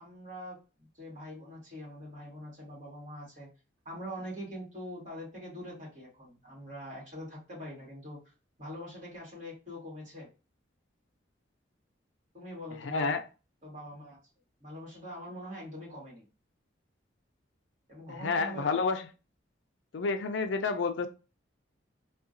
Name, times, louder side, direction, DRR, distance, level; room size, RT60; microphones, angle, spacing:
voice 1, 0.0-3.5 3.9-8.3 8.6-10.3 12.3-13.2 13.6-14.2 14.6-16.2 17.9-18.8, equal, 40° right, -4 dB, 1.8 m, -43 dB
voice 2, 12.9-13.2 18.2-19.1 19.9-21.1, left 4 dB, 70° left, 8 dB, 0.4 m, -29 dB
3.7 x 2.3 x 2.5 m, 0.31 s
head